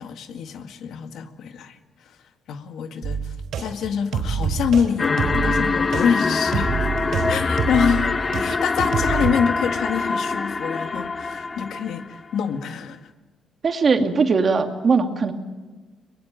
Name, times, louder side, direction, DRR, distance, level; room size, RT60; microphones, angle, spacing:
voice 1, 0.0-1.8 2.5-6.9 7.3-8.1 8.4-13.1, left 7 dB, 75° left, 7 dB, 1.9 m, -26 dB
sound 1, 3.0-8.4 8.8-9.3, right 6 dB, 70° right, 4.2 m, -26 dB
sound 2, 5.0-12.2, left 4 dB, 30° left, 1.0 m, -24 dB
voice 2, 13.6-15.3, right 4 dB, 45° right, 5 dB, 2.6 m, -20 dB
23.0 x 21.5 x 9.1 m, 1.2 s
cardioid pair, 90°, 0 cm